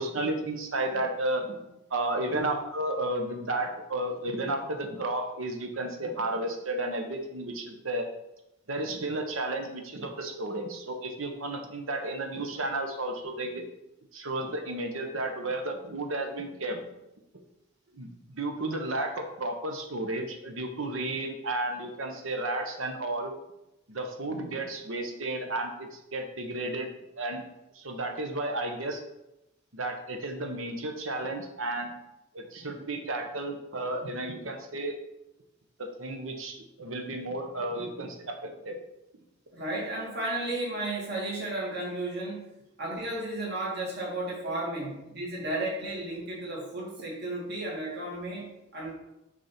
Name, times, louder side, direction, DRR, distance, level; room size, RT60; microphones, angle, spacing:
voice 1, 0.0-1.6 1.9-8.1 8.7-13.6 14.1-16.8 17.9-23.3 23.9-27.4 27.7-29.0 29.7-32.0 32.3-35.0 35.8-38.8, right 2 dB, 75° right, 4 dB, 1.1 m, -33 dB
voice 2, 39.5-42.4 42.8-48.9, right 2 dB, 50° right, -5 dB, 2.3 m, -33 dB
6.1 x 4.2 x 6.0 m, 0.92 s
head